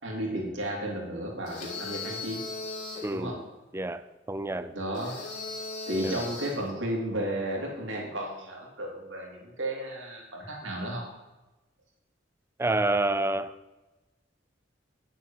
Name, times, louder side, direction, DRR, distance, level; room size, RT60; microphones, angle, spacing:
voice 1, 0.0-2.4 3.1-3.4 4.7-5.2 5.9-11.1, right 1 dB, 80° right, 3.4 m, -33 dB
sound 1, 1.5-3.2 4.9-6.7, left 3 dB, 45° left, 3.1 m, -37 dB
voice 2, 3.0-3.4 3.7-4.0 4.3-4.7 6.0-6.3 12.6-13.5, right 2 dB, 15° right, 0.5 m, -28 dB
10.0 x 7.5 x 7.3 m
head